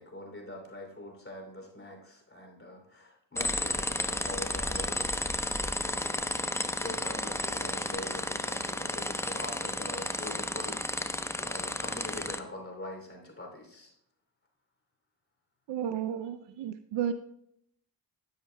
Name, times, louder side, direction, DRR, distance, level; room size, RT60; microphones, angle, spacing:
voice 1, 0.0-6.1 6.8-13.9, left 1 dB, 30° left, 2 dB, 2.9 m, -44 dB
sound 1, 3.4-12.4, left 1 dB, 5° left, 0.7 m, -32 dB
voice 2, 15.7-17.1, right 9 dB, 70° right, 10 dB, 0.6 m, -32 dB
11.5 x 10.5 x 2.2 m, 0.74 s
supercardioid pair, 50°, 45 cm